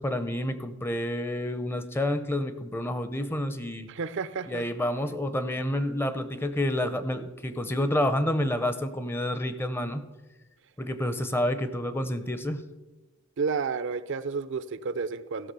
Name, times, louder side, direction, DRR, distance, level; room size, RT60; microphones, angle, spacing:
voice 1, 0.0-3.9 4.5-10.0 10.8-12.6, left 1 dB, 10° left, 11 dB, 0.6 m, -29 dB
voice 2, 3.9-4.7 13.4-15.5, right 5 dB, 60° right, 15 dB, 0.5 m, -31 dB
14.5 x 5.8 x 6.8 m, 1.1 s
head